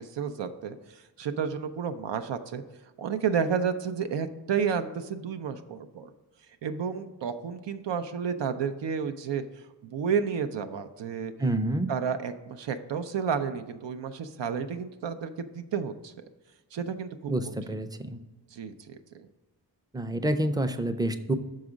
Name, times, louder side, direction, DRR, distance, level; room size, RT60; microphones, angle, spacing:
voice 1, 0.0-2.6 3.0-6.1 6.6-9.4 9.8-11.3 11.9-16.1 16.7-17.5 18.5-19.3, right 6 dB, 90° right, 8 dB, 0.6 m, -31 dB
voice 2, 11.4-11.9 17.3-18.2 19.9-21.3, right 1 dB, 10° right, 8 dB, 0.4 m, -28 dB
6.2 x 4.8 x 5.0 m, 1.1 s
wide cardioid pair, 85°, 42 cm